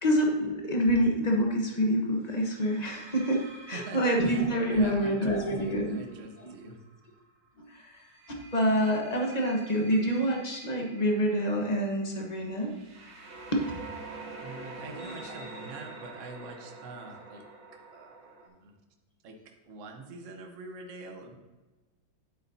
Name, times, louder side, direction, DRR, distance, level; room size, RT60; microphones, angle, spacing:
voice 1, 0.0-6.0 6.4-6.5 7.7-7.9 8.3-12.7 13.5-13.6 14.9-15.2, equal, 25° left, 0 dB, 0.9 m, -27 dB
sound 1, 0.6-0.9 2.4-7.2 8.0-18.5, right 3 dB, 75° right, 2.1 m, -47 dB
voice 2, 3.7-6.8 14.4-17.4 17.9-18.7 19.2-19.4 19.7-21.4, right 3 dB, 50° right, 3 dB, 1.1 m, -44 dB
9.1 x 7.9 x 2.7 m, 1.2 s
omnidirectional pair, 2.2 m